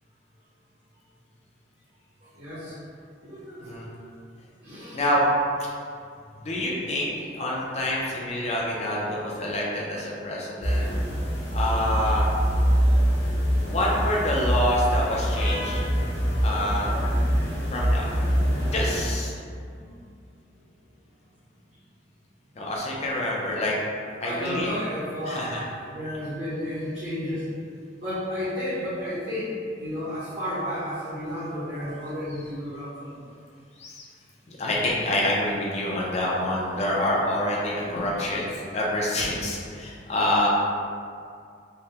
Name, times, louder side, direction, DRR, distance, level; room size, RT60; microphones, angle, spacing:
voice 1, 2.3-2.7 3.2-3.9 4.6-5.0 24.2-27.4 28.0-29.5 29.8-33.2, equal, 65° right, -14 dB, 1.2 m, -32 dB
voice 2, 4.9-5.3 6.4-7.1 7.3-10.9 11.5-12.3 13.7-15.8 16.4-16.9 17.7-18.1 18.6-19.3 22.6-23.7 24.2-24.7 25.2-25.6 33.8-34.0 34.5-40.5, left 1 dB, 35° left, -4 dB, 0.5 m, -27 dB
sound 1, 10.6-19.0, equal, 75° left, 1.1 m, -24 dB
3.3 x 2.2 x 2.8 m, 2.3 s
head